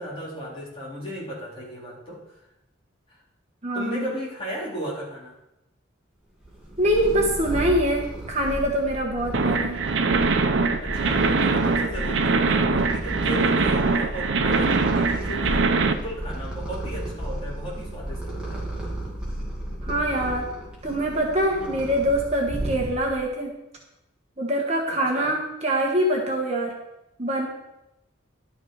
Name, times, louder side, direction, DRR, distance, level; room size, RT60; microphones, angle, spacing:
voice 1, 0.0-2.2 3.1-3.2 3.7-5.3 10.8-18.7 21.6-21.8 24.9-25.3, equal, 30° left, -6 dB, 3.6 m, -35 dB
voice 2, 3.6-4.1 6.8-9.8 19.8-20.5 20.8-23.5 24.4-26.7 27.2-27.5, right 1 dB, 35° right, -1 dB, 1.4 m, -24 dB
Purr, 6.4-23.3, right 1 dB, 5° right, 2.5 m, -33 dB
sound 1, 9.3-15.9, right 4 dB, 75° right, 0.7 m, -22 dB
11.5 x 7.2 x 4.7 m, 0.90 s
head